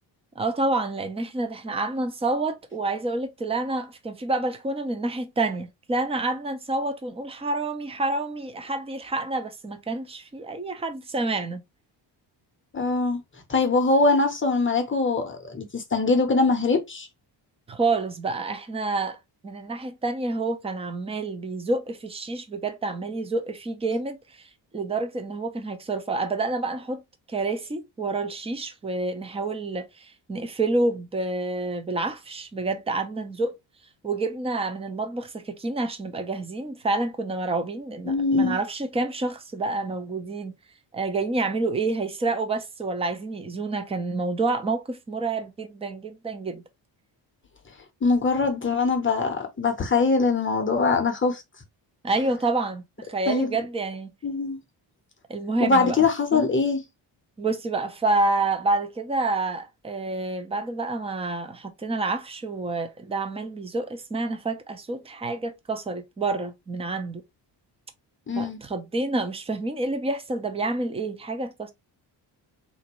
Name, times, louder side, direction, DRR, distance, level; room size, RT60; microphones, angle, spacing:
voice 1, 0.4-11.6 17.7-19.2 19.4-27.0 27.3-33.6 34.0-40.5 40.9-46.6 52.0-54.1 55.3-56.0 56.3-56.5 57.4-67.2 68.4-71.7, right 2 dB, 15° right, 0.5 m, -28 dB
voice 2, 12.7-13.2 13.5-17.1 38.1-38.6 48.0-51.4 53.3-53.5 54.2-54.6 55.6-56.8 68.3-68.6, left 3 dB, 25° left, 0.7 m, -22 dB
3.8 x 2.6 x 2.9 m
wide cardioid pair, 160°, 44 cm